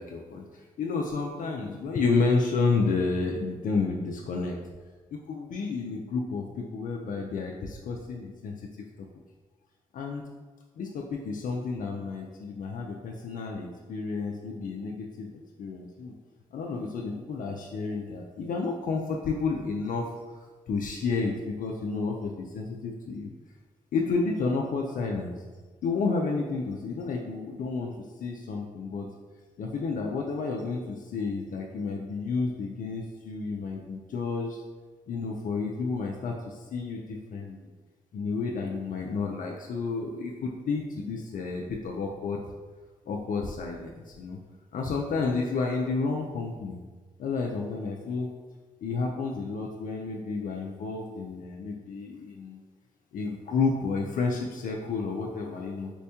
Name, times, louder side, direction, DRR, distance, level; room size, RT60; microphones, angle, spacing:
voice 1, 0.0-4.6 5.1-8.6 9.0-9.1 9.9-10.2 10.8-16.1 16.5-20.1 20.7-23.3 23.9-25.3 25.8-29.1 29.6-34.6 35.1-37.6 38.1-42.4 43.1-44.4 44.7-46.8 47.2-48.3 48.8-52.6 53.1-55.9, left 4 dB, 65° left, 0 dB, 0.4 m, -31 dB
4.4 x 2.1 x 2.8 m, 1.3 s
supercardioid pair, 50°, 15 cm